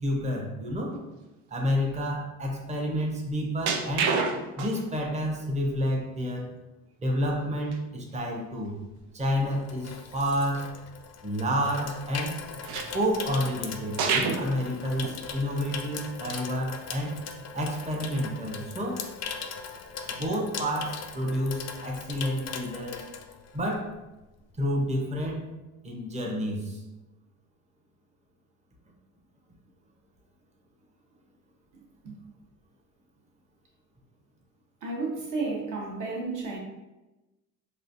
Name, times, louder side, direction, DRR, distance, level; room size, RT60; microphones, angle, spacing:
voice 1, 0.0-1.0 1.5-4.2 4.6-6.5 7.0-8.8 9.1-10.7 11.2-12.4 12.9-17.2 17.5-19.0 20.1-23.1 23.5-23.9 24.6-25.4 25.8-26.8, equal, 15° right, -1 dB, 0.9 m, -29 dB
sound 1, 3.7-5.0 5.4-5.5 7.7-7.8 8.1-8.2 8.6-8.7 12.6-13.6 14.0-14.5 15.0-15.2 15.7-15.8 17.0-17.1 17.5-17.9 20.1-20.3, right 5 dB, 70° right, 0.6 m, -29 dB
Water tap faucet / Sink (filling or washing), 8.9-23.9 24.2-24.5, left 6 dB, 40° left, 0.5 m, -40 dB
voice 2, 34.8-36.6, right 3 dB, 45° right, -2 dB, 1.2 m, -32 dB
4.1 x 2.5 x 2.7 m, 1.0 s
hypercardioid pair, 70°, 42 cm